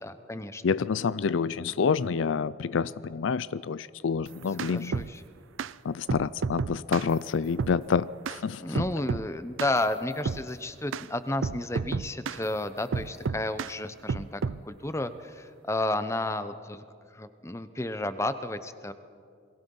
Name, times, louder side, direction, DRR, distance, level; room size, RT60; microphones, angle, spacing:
voice 1, 0.0-0.6 4.7-5.2 8.6-16.8 17.1-18.9, left 2 dB, 15° left, 11 dB, 0.8 m, -32 dB
voice 2, 0.6-5.0 5.8-8.6, left 5 dB, 80° left, 19 dB, 0.4 m, -28 dB
sound 1, 4.3-5.1 5.6-5.7 6.1-7.1 7.6-7.8 8.2-8.4 8.7-9.3 9.6-9.8 10.2-10.4 10.9-11.1 11.4-12.4 12.9-13.7 14.1-14.6, right 5 dB, 90° right, 0.5 m, -31 dB
28.5 x 22.0 x 5.5 m, 2.3 s
head